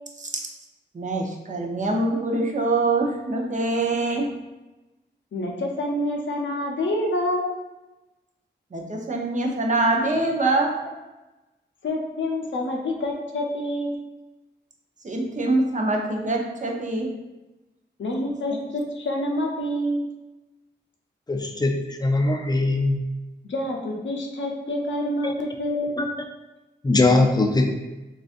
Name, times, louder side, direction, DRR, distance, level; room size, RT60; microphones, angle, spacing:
voice 1, 0.9-4.3 8.7-10.7 15.0-17.1, right 2 dB, 40° right, 0 dB, 0.6 m, -24 dB
voice 2, 5.3-7.6 11.8-14.0 18.0-20.1 23.5-26.1, left 1 dB, 85° left, 0 dB, 0.6 m, -27 dB
voice 3, 21.3-23.0 25.2-25.3 26.0-26.1 26.8-27.7, left 2 dB, 20° left, 3 dB, 0.4 m, -21 dB
3.9 x 2.4 x 2.4 m, 1.1 s
cardioid pair, 60°, 19 cm